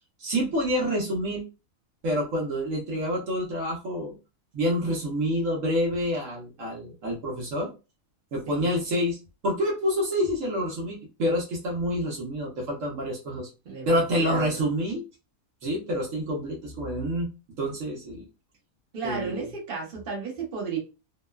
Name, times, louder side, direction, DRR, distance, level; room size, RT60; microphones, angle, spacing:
voice 1, 0.2-1.4 2.0-4.1 4.5-7.7 8.3-9.2 9.4-13.5 13.9-15.0 15.6-17.3 17.6-18.3 19.0-19.5, equal, 70° right, -1 dB, 1.1 m, -27 dB
voice 2, 13.6-14.7 18.9-20.8, right 5 dB, 45° right, -1 dB, 1.0 m, -34 dB
2.9 x 2.1 x 2.2 m, 0.29 s
omnidirectional pair, 1.5 m